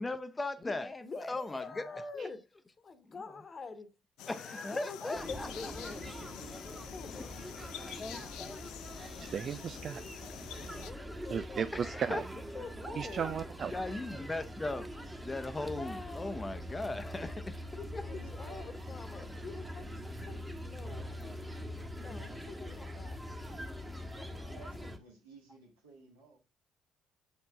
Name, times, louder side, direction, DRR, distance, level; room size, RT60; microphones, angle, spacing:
voice 1, 0.0-1.6 2.2-2.3 3.1-3.2 4.3-5.7 7.8-8.5 9.0-9.2 11.7-12.2 13.7-14.9 15.2-17.7 17.9-18.0 22.1-22.2 23.8-24.3, left 2 dB, 25° left, 0.8 m, -38 dB
voice 2, 1.0-2.4 2.8-3.9 4.6-6.3 6.8-7.3 10.7-11.6 12.3-13.4 17.8-21.5 22.0-23.2, left 4 dB, 40° left, 1.3 m, -46 dB
sound 1, 4.2-10.9, left 12 dB, 70° left, 0.4 m, -47 dB
sound 2, 5.1-25.0, equal, 10° right, 1.4 m, -43 dB
voice 3, 9.2-10.0 11.3-12.2 13.0-13.7, right 7 dB, 50° right, 0.4 m, -35 dB
voice 4, 18.0-18.7 22.6-22.8 24.2-26.4, right 3 dB, 90° right, 2.3 m, -55 dB
7.4 x 4.7 x 3.6 m
hypercardioid pair, 50°, 0 cm